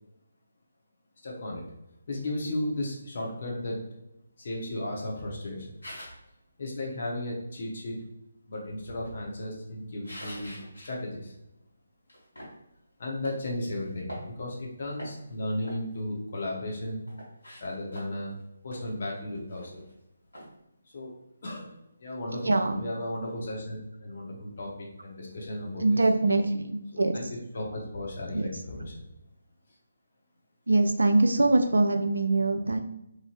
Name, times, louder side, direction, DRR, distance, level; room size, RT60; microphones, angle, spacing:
voice 1, 1.2-1.7 2.1-3.8 4.4-5.7 6.6-8.0 8.5-10.6 10.8-11.3 13.0-17.0 17.6-18.4 18.6-19.8 20.9-21.7 22.0-26.0 26.9-27.2 27.5-29.0, left 1 dB, 50° left, -2 dB, 0.8 m, -35 dB
sound 1, 5.8-6.3 8.7-10.9 11.4-11.5 12.1-12.6 13.2-13.4 13.9-14.6 14.9-15.3 15.6-16.7 17.1-18.3 18.7-18.8 19.2-19.3 19.5-19.9 20.3-20.5, equal, 80° left, 1.5 m, -45 dB
voice 2, 22.4-22.8 25.8-27.2 28.3-28.5 30.7-32.8, right 2 dB, 70° right, 5 dB, 0.3 m, -23 dB
3.0 x 2.5 x 2.4 m, 0.87 s
figure-of-eight pair, 150°, 0 cm